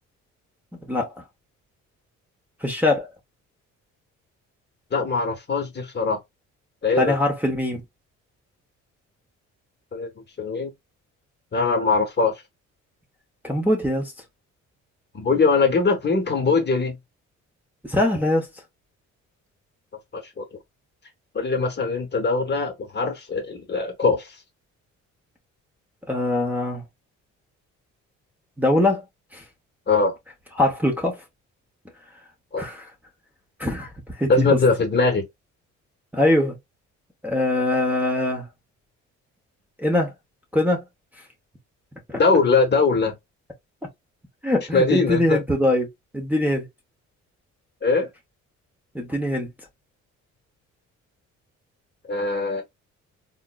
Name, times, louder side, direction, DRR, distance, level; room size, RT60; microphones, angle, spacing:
voice 1, 2.6-3.1 7.0-7.8 13.4-14.1 17.8-18.5 26.1-26.8 28.6-29.0 29.3-29.4 30.6-31.2 32.6-32.9 33.6-34.5 36.1-36.6 37.2-38.5 39.8-40.1 40.5-40.8 44.4-45.9 46.1-46.7 48.9-49.5, left 1 dB, 5° right, 0.7 m, -22 dB
voice 2, 4.9-6.2 6.8-7.2 9.9-10.1 10.4-10.7 11.5-12.3 15.1-17.0 20.1-20.4 21.3-24.3 29.9-30.1 32.5-32.7 34.3-35.2 42.2-43.1 44.7-45.4 47.8-48.1 52.1-52.6, left 4 dB, 35° left, 0.9 m, -21 dB
3.7 x 2.0 x 2.2 m
cardioid pair, 90°, 30 cm